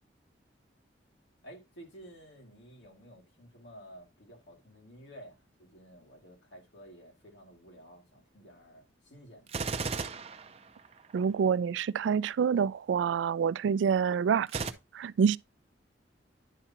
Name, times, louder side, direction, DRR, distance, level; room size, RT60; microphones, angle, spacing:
voice 1, 1.4-9.5, equal, 85° left, 2.4 m, -52 dB
Gunshot gunfire, 9.5-11.2 14.5-14.7, right 4 dB, 35° right, 0.6 m, -35 dB
voice 2, 11.1-14.6 14.9-15.4, right 7 dB, 90° right, 0.3 m, -27 dB
10.0 x 5.9 x 2.9 m
head